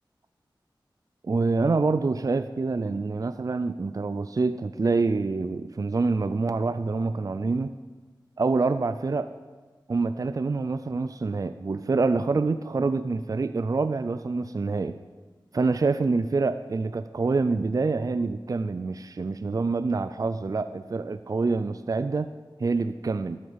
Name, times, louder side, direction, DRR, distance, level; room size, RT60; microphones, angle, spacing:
voice 1, 1.2-7.7 8.4-9.3 9.9-15.0 15.5-22.3 22.6-23.4, right 3 dB, 45° right, 11 dB, 0.4 m, -26 dB
13.5 x 6.6 x 5.5 m, 1.3 s
wide cardioid pair, 50°, 8 cm